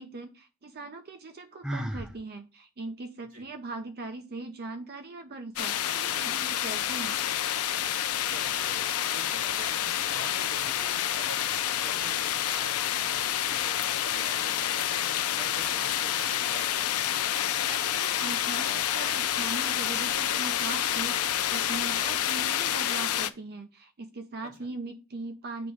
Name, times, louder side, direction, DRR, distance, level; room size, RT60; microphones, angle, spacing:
voice 1, 0.0-7.2 17.7-25.7, right 3 dB, 45° right, 7 dB, 0.6 m, -40 dB
Sigh, 1.6-2.1, equal, 5° right, 0.5 m, -33 dB
sound 1, 5.6-23.3, left 11 dB, 85° left, 0.5 m, -28 dB
voice 2, 8.3-8.9 9.1-15.0 15.4-17.1, right 2 dB, 90° right, 1 dB, 2.5 m, -47 dB
7.9 x 3.0 x 4.7 m, 0.30 s
head